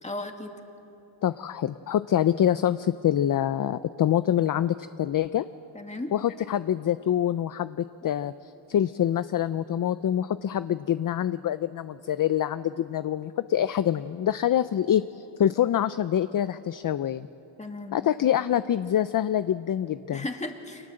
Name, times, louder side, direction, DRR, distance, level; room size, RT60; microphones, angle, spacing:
voice 1, 0.0-0.5 5.7-6.1 17.6-18.0 20.1-20.9, left 2 dB, 15° left, 4 dB, 2.1 m, -35 dB
voice 2, 1.2-5.5 6.1-17.3 17.9-20.2, left 10 dB, 45° left, 13 dB, 0.5 m, -25 dB
30.0 x 24.5 x 7.7 m, 3.0 s
wide cardioid pair, 130°, 49 cm